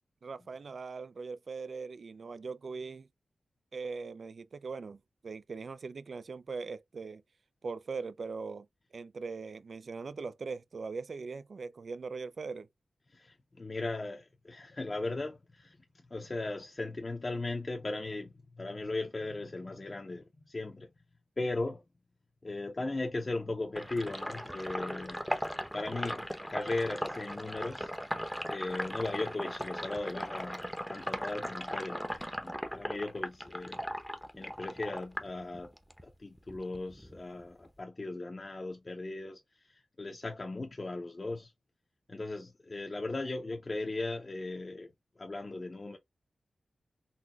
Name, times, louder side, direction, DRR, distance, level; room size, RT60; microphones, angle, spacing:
voice 1, 0.2-3.1 3.7-7.2 7.6-8.7 8.9-12.7, right 4 dB, 60° right, 0.3 m, -40 dB
voice 2, 13.1-15.8 16.1-20.9 21.4-21.8 22.4-25.3 25.7-27.9 28.5-33.8 34.3-35.7 36.0-39.4 40.0-41.5 42.1-44.9 45.2-46.0, left 2 dB, 35° left, 0.6 m, -37 dB
Sink (filling or washing), 23.7-36.0 36.4-37.8, equal, ahead, 0.7 m, -38 dB
4.0 x 2.2 x 2.7 m
wide cardioid pair, 90°, 0 cm